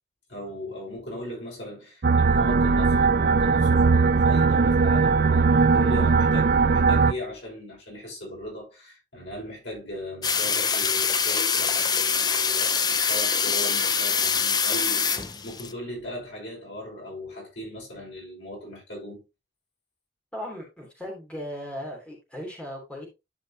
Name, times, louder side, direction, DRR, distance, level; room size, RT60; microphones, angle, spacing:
voice 1, 0.3-19.2, equal, 80° left, 5.5 m, -38 dB
sound 1, 2.0-7.1, right 4 dB, 55° right, 0.5 m, -19 dB
sound 2, 10.2-15.7, left 6 dB, 20° left, 0.5 m, -24 dB
voice 2, 20.3-23.1, equal, 5° left, 3.0 m, -37 dB
11.5 x 5.1 x 2.9 m
head